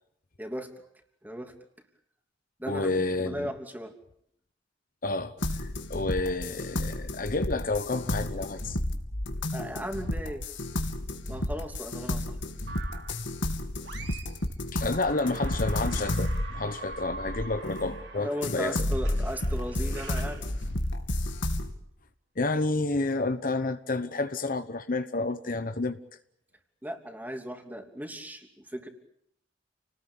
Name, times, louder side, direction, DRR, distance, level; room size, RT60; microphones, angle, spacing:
voice 1, 0.4-0.7 1.2-1.5 2.6-3.9 9.5-10.4 11.3-12.4 18.1-20.4 26.8-28.9, equal, 10° right, 3.0 m, -36 dB
voice 2, 2.7-3.5 5.0-5.3 5.6-8.8 14.7-18.8 22.4-26.0, left 3 dB, 45° left, 1.0 m, -30 dB
sound 1, 5.4-18.0 18.4-21.7, left 1 dB, 80° left, 2.7 m, -31 dB
sound 2, 12.7-13.2 13.8-14.4 14.7-21.2, right 3 dB, 65° right, 4.5 m, -44 dB
29.5 x 19.5 x 8.8 m
head